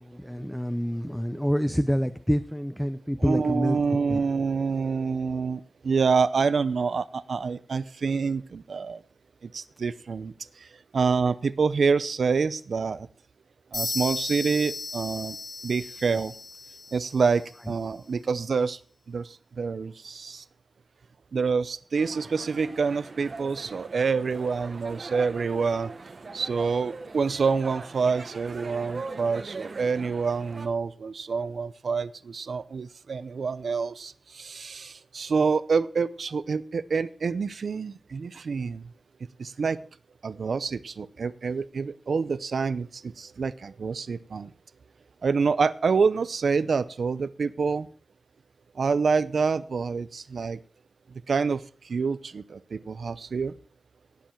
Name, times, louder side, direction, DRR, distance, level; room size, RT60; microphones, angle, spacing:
voice 1, 0.0-3.8 4.1-4.2 16.1-16.2, equal, 5° left, 10 dB, 0.6 m, -27 dB
voice 2, 3.2-9.0 9.4-10.3 10.9-13.1 13.7-15.4 15.6-16.3 16.9-18.8 19.1-19.3 19.6-20.4 21.3-25.9 26.3-38.9 39.4-39.8 40.2-44.5 45.2-47.9 48.8-50.6 51.3-53.5, right 5 dB, 75° right, 15 dB, 0.6 m, -27 dB
sound 1, 13.7-17.5, left 3 dB, 65° left, 5.7 m, -35 dB
sound 2, 22.0-30.7, right 3 dB, 55° right, 1.2 m, -41 dB
17.5 x 7.2 x 4.5 m, 0.43 s
wide cardioid pair, 125°, 0 cm